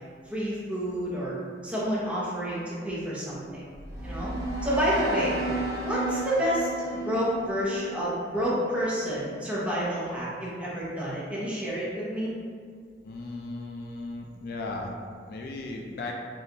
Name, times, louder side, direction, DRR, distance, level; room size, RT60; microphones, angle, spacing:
voice 1, 0.3-1.4 1.6-3.6 4.0-4.3 4.6-5.3 5.8-12.3, equal, 5° right, -8 dB, 0.7 m, -29 dB
sound 1, 3.6-8.7, right 2 dB, 60° right, 0.7 m, -34 dB
voice 2, 13.0-14.9 15.3-16.1, left 2 dB, 55° left, 1 dB, 0.3 m, -36 dB
3.6 x 2.3 x 2.7 m, 2.1 s
head